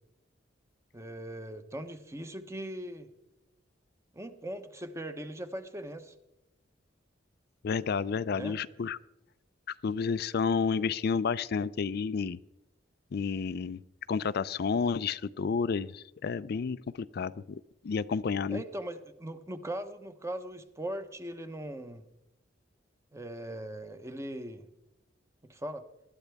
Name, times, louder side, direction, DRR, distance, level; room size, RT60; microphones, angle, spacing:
voice 1, 0.9-3.1 4.1-6.1 8.4-8.6 18.5-22.0 23.1-24.7 25.5-25.9, right 1 dB, 15° right, 9 dB, 1.0 m, -40 dB
voice 2, 7.6-9.0 9.7-12.4 13.1-13.8 14.1-18.6, left 5 dB, 55° left, 16 dB, 0.4 m, -31 dB
20.0 x 13.0 x 3.5 m, 0.91 s
head